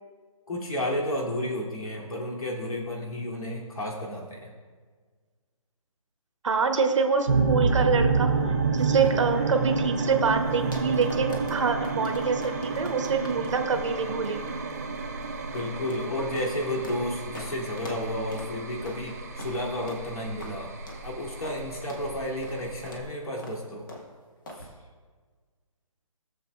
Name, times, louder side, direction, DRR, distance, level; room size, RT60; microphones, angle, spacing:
voice 1, 0.5-4.5 15.5-20.7 21.0-23.8 24.6-24.7, left 1 dB, 80° left, -3 dB, 2.9 m, -32 dB
voice 2, 6.4-8.3 8.7-14.4, right 5 dB, 55° right, 5 dB, 1.0 m, -26 dB
sound 1, 7.3-23.0, right 4 dB, 25° right, 0.6 m, -29 dB
sound 2, 8.8-17.0 17.3-17.5 17.8-18.0 18.3-18.5 18.9-19.0 19.4-19.6 19.9-20.0 20.4-20.5 20.9-21.1 21.4-21.6 21.9-22.0 22.4-22.6 22.9-23.1 23.4-23.6 23.9-24.1 24.5-24.7, left 1 dB, 35° left, 1.4 m, -43 dB
17.5 x 7.0 x 2.4 m, 1.5 s
hypercardioid pair, 175°, 18 cm